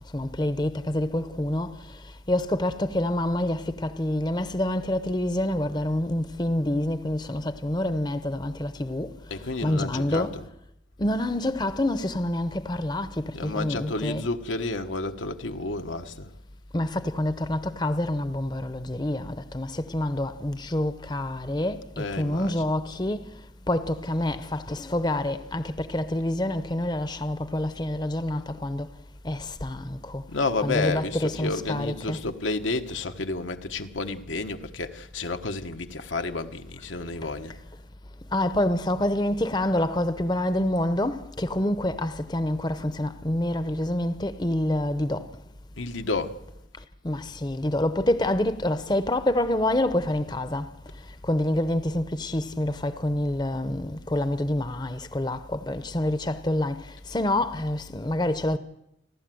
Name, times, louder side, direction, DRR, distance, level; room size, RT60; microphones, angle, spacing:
voice 1, 0.1-1.7 2.3-9.1 9.6-10.3 11.0-14.3 16.7-23.2 23.7-28.9 29.2-30.2 30.6-32.2 38.3-45.2 47.0-50.7 51.3-56.8 57.1-58.6, left 1 dB, 20° left, 0.7 m, -27 dB
voice 2, 9.3-10.5 13.2-16.3 22.0-22.7 30.3-37.5 45.8-46.3, left 3 dB, 90° left, 1.3 m, -31 dB
30.0 x 12.0 x 7.7 m
head